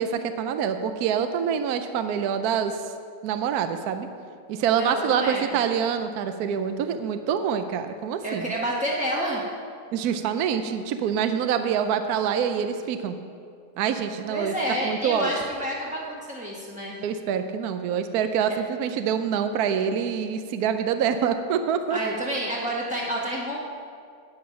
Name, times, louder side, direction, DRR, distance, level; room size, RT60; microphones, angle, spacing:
voice 1, 0.0-2.8 3.2-4.1 4.5-8.5 9.9-13.1 13.8-14.5 14.8-15.3 17.0-22.0, right 7 dB, 70° right, 8 dB, 1.0 m, -26 dB
voice 2, 4.7-5.6 8.2-9.4 14.3-17.0 21.9-23.6, right 1 dB, 5° right, -5 dB, 0.6 m, -29 dB
10.0 x 8.9 x 5.7 m, 2.3 s
omnidirectional pair, 2.0 m